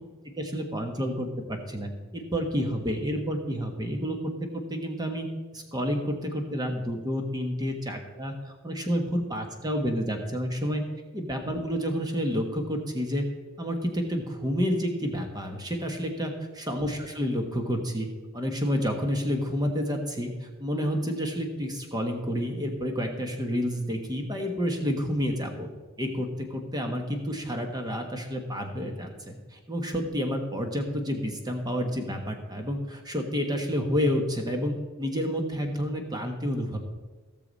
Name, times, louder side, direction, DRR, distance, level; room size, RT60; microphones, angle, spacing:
voice 1, 0.4-4.2 4.5-5.3 5.5-10.8 11.1-13.2 13.6-18.1 18.3-25.7 26.0-36.8, equal, 20° right, 4 dB, 1.2 m, -29 dB
17.0 x 6.8 x 4.1 m, 1.4 s
head